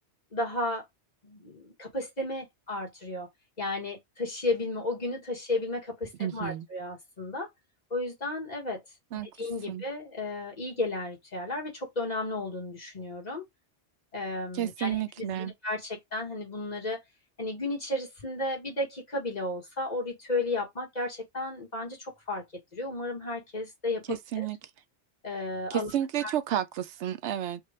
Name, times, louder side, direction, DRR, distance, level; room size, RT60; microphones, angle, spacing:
voice 1, 0.3-0.8 1.2-3.3 3.6-7.5 7.9-8.8 9.4-13.4 14.1-17.0 17.4-24.5 25.2-25.9 26.2-26.3, left 2 dB, 40° left, 1.6 m, -33 dB
voice 2, 6.2-6.7 9.1-9.3 9.7-9.8 14.5-15.5 24.1-24.6 25.7-27.6, right 11 dB, 80° right, 0.9 m, -31 dB
3.5 x 2.3 x 4.2 m
omnidirectional pair, 1.2 m